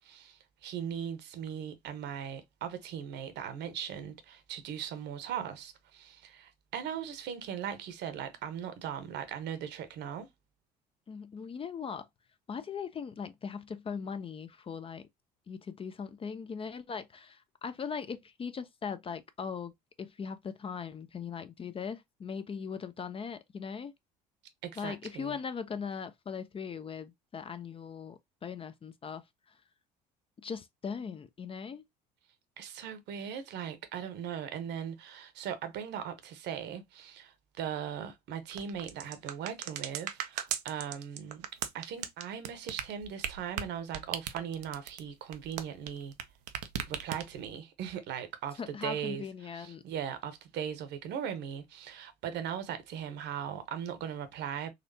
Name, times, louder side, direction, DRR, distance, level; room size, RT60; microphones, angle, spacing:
voice 1, 0.0-10.3 24.6-25.4 32.6-41.5 41.7-46.1 46.9-54.7, right 8 dB, 60° right, 0.9 m, -39 dB
voice 2, 11.1-12.1 12.5-15.1 15.5-19.7 20.0-23.9 24.8-29.6 30.4-31.8 48.6-49.8, left 6 dB, 25° left, 0.5 m, -39 dB
sound 1, 38.5-46.2 46.5-47.5, right 10 dB, 75° right, 0.5 m, -37 dB
4.1 x 2.6 x 2.6 m
hypercardioid pair, 60°, 20 cm